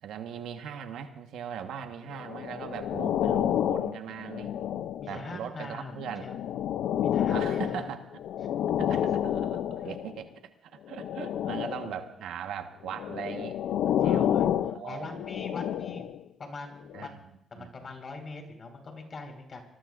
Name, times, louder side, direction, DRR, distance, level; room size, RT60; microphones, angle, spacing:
voice 1, 0.0-4.5 5.1-6.3 7.3-8.0 8.8-14.3 14.7-15.2 16.9-17.2 17.5-17.7, right 8 dB, 80° right, 6 dB, 1.3 m, -39 dB
sound 1, 2.2-5.3 5.9-10.2 10.9-12.0 12.9-16.2 16.9-17.1, left 10 dB, 80° left, 0.5 m, -29 dB
voice 2, 5.0-6.4 7.0-7.9 14.0-16.1 16.4-17.2 17.5-19.6, left 3 dB, 40° left, 4 dB, 4.6 m, -42 dB
25.5 x 20.5 x 2.6 m, 0.80 s
cardioid pair, 90°, 0 cm